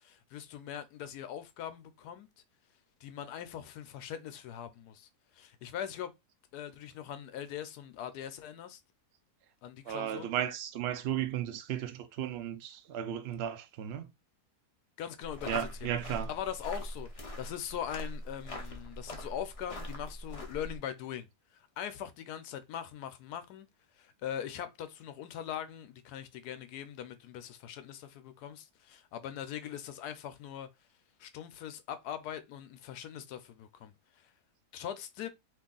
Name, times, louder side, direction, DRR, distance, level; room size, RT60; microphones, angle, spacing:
voice 1, 0.0-2.3 3.0-6.1 6.5-8.8 9.6-10.3 15.0-15.9 16.3-17.1 17.4-21.3 21.5-23.7 24.0-30.7 31.2-34.3 34.7-35.3, left 10 dB, 80° left, 1.1 m, -41 dB
voice 2, 9.9-14.1 15.5-16.3, right 10 dB, 75° right, 0.5 m, -35 dB
sound 1, 15.2-20.8, left 1 dB, 45° left, 0.4 m, -42 dB
2.9 x 2.7 x 3.7 m
omnidirectional pair, 1.7 m